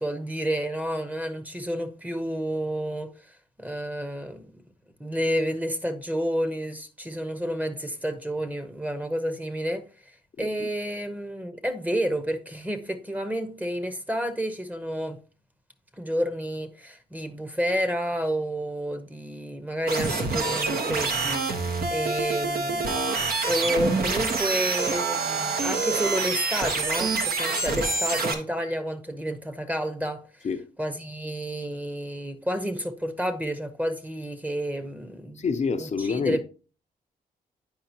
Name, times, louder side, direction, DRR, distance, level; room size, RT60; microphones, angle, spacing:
voice 1, 0.0-3.1 3.6-4.5 5.0-9.9 10.4-15.2 16.0-23.2 23.4-30.2 30.8-35.4 35.8-36.4, equal, 10° right, 0.9 m, -30 dB
voice 2, 10.4-10.7 30.4-30.7 35.4-36.4, left 5 dB, 45° left, 0.6 m, -28 dB
sound 1, 19.9-28.3, right 3 dB, 70° right, 1.2 m, -26 dB
9.5 x 4.9 x 2.9 m
cardioid pair, 85°, 16 cm